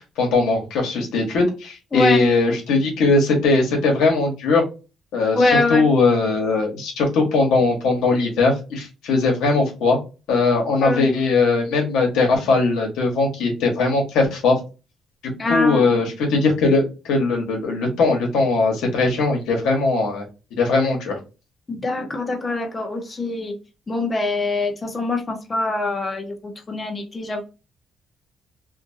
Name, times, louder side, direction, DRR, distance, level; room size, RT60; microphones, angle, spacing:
voice 1, 0.2-4.6 5.1-10.0 10.3-14.6 15.5-20.2 20.6-21.2, left 3 dB, 90° left, 1 dB, 1.1 m, -19 dB
voice 2, 1.9-2.3 5.4-5.9 10.8-11.1 15.4-16.0 21.7-23.6 23.9-27.4, left 3 dB, 30° left, 3 dB, 0.8 m, -23 dB
2.6 x 2.6 x 2.6 m, 0.30 s
cardioid pair, 90°, 0 cm